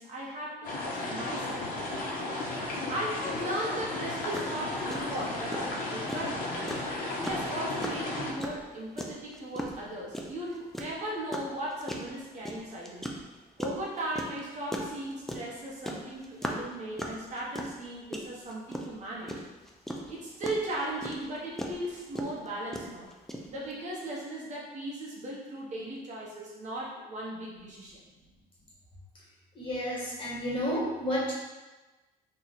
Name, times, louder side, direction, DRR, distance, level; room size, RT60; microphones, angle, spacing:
voice 1, 0.0-1.7 2.9-6.5 7.2-13.2 13.6-19.3 20.1-23.1 23.5-28.0, right 1 dB, 45° right, -5 dB, 1.1 m, -37 dB
sound 1, 0.6-8.3, left 2 dB, 55° left, 0.8 m, -34 dB
sound 2, 4.0-4.1 4.3-4.5 4.9-23.7, equal, ahead, 0.4 m, -37 dB
voice 2, 29.5-31.3, equal, 30° left, -5 dB, 1.5 m, -31 dB
2.8 x 2.4 x 4.1 m, 1.2 s
cardioid pair, 110°, 17 cm